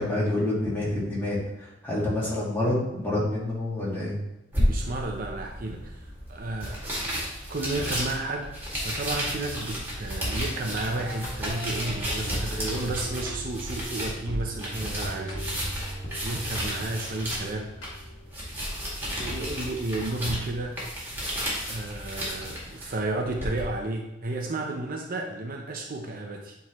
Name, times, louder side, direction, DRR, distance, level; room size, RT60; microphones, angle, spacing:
voice 1, 0.0-4.2, left 1 dB, 10° left, -7 dB, 2.1 m, -27 dB
sound 1, 4.5-23.6, equal, 10° right, 2.1 m, -33 dB
voice 2, 4.7-7.2 7.5-17.7 19.2-20.8 21.7-26.6, right 2 dB, 50° right, 2 dB, 0.6 m, -33 dB
sound 2, 10.2-18.3, right 1 dB, 80° left, 1.7 m, -38 dB
8.8 x 3.7 x 3.1 m, 0.95 s
head